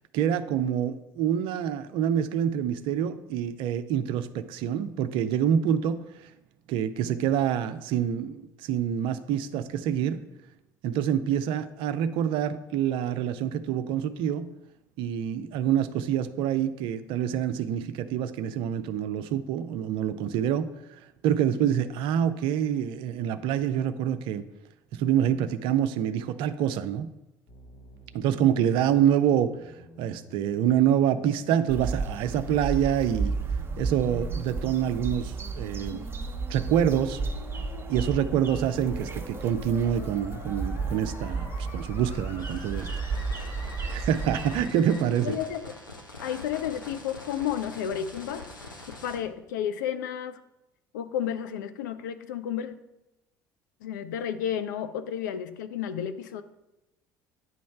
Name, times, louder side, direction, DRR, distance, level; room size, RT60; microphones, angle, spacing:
voice 1, 0.1-6.0 6.7-10.2 10.8-14.5 15.0-20.7 21.2-24.4 24.9-27.1 28.1-29.5 30.0-33.4 33.8-36.1 36.5-37.2 37.9-42.9 43.8-45.4, right 9 dB, 55° right, 12 dB, 0.5 m, -26 dB
sound 1, 27.5-45.0, left 2 dB, 45° left, 0.9 m, -48 dB
sound 2, 31.7-44.7, right 4 dB, 20° right, 0.9 m, -33 dB
sound 3, 42.4-49.2, left 2 dB, 80° left, 0.8 m, -44 dB
voice 2, 45.2-45.6 46.2-48.4 48.9-50.4 50.9-52.7 53.8-56.4, left 9 dB, 65° left, 10 dB, 0.5 m, -32 dB
9.4 x 3.1 x 5.6 m, 0.96 s
figure-of-eight pair, 60°, 11 cm